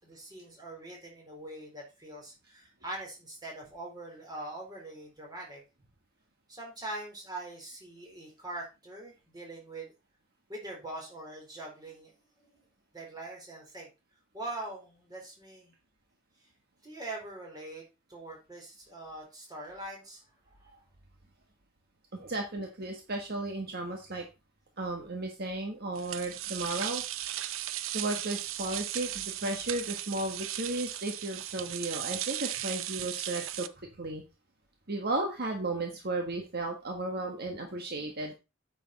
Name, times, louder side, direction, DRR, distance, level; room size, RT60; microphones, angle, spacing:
voice 1, 0.0-5.6 6.5-9.9 10.5-12.5 12.9-13.9 14.3-15.7 16.8-17.8 18.1-20.2, right 2 dB, 20° right, -1 dB, 4.3 m, -43 dB
voice 2, 22.1-24.2 24.8-27.0 27.9-34.2 34.9-38.3, right 2 dB, 50° right, 3 dB, 1.4 m, -34 dB
sound 1, 26.0-33.7, right 13 dB, 85° right, 0.6 m, -36 dB
9.1 x 6.9 x 4.2 m, 0.28 s
head